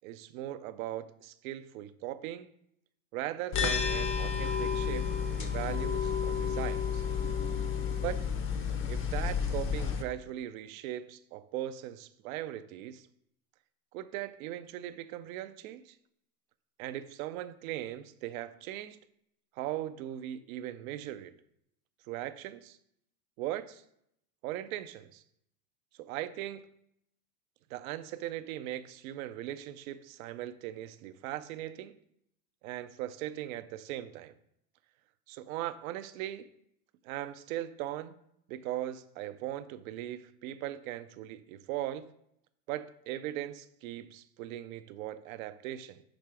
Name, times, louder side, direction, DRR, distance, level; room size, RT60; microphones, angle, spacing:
voice 1, 0.0-2.5 3.1-7.1 8.0-8.2 8.9-13.1 13.9-16.0 16.8-19.0 19.6-21.3 22.1-22.8 23.4-23.8 24.4-25.2 26.0-26.7 27.7-32.0 32.6-34.3 35.3-36.5 37.0-38.2 38.5-42.1 42.7-46.0, right 13 dB, 60° right, 0.6 m, -39 dB
sound 1, 3.5-10.0, left 7 dB, 25° left, 0.6 m, -31 dB
6.2 x 3.2 x 4.7 m
hypercardioid pair, 105°, 47 cm